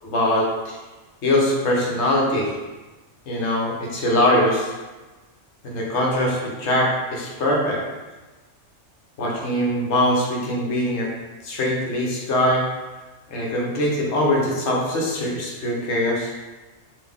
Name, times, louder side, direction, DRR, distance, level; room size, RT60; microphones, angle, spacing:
voice 1, 0.0-0.8 1.2-2.5 3.3-4.7 5.6-7.8 9.2-11.1 11.4-12.6 13.3-16.3, left 1 dB, 70° left, -2 dB, 1.1 m, -22 dB
4.1 x 2.5 x 3.5 m, 1.2 s
omnidirectional pair, 1.2 m